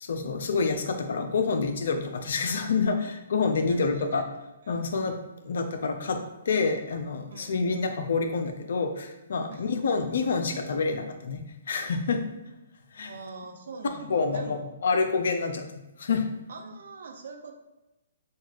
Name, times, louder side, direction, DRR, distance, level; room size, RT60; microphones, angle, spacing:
voice 1, 0.0-4.2 4.7-5.2 5.4-6.2 6.5-12.2 12.9-13.1 14.1-15.6 16.0-16.3, left 4 dB, 65° left, 6 dB, 0.5 m, -27 dB
voice 2, 3.6-4.2 4.6-4.9 7.3-7.6 9.5-9.7 13.0-14.8 16.5-17.5, right 3 dB, 65° right, 4 dB, 0.6 m, -43 dB
6.1 x 2.4 x 2.4 m, 0.99 s
hypercardioid pair, 130°, 0 cm